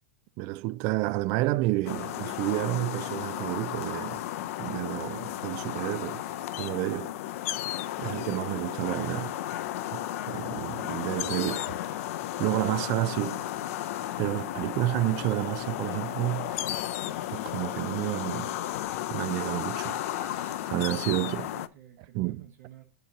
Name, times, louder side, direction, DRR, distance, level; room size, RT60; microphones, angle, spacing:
voice 1, 0.4-4.2 4.6-6.2 6.6-7.1 8.0-9.4 9.9-11.7 12.4-13.5 14.2-16.7 17.3-18.5 19.1-21.5 22.1-22.5, right 19 dB, 45° right, 0.3 m, -30 dB
sound 1, 1.9-21.7, left 13 dB, 60° left, 0.5 m, -34 dB
voice 2, 20.9-22.8, right 9 dB, 65° right, 1.1 m, -50 dB
8.1 x 3.0 x 5.9 m
hypercardioid pair, 125°, 8 cm